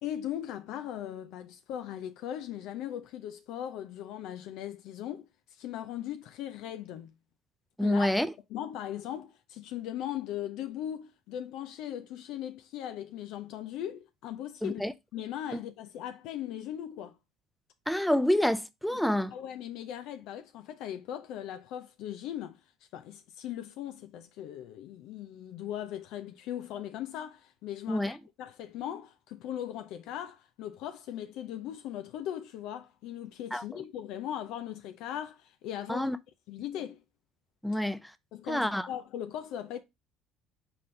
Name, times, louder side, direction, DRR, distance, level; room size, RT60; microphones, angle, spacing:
voice 1, 0.0-7.1 7.8-8.2 8.5-14.8 15.1-17.1 18.9-19.0 19.3-22.6 22.9-36.1 36.5-37.0 38.3-39.8, left 11 dB, 65° left, 0.5 m, -39 dB
voice 2, 7.8-8.3 14.6-14.9 17.9-19.3 27.9-28.2 33.5-33.6 35.9-36.2 37.6-38.0 38.5-38.9, left 1 dB, ahead, 0.5 m, -27 dB
4.3 x 3.9 x 3.2 m
hypercardioid pair, 70°, 0 cm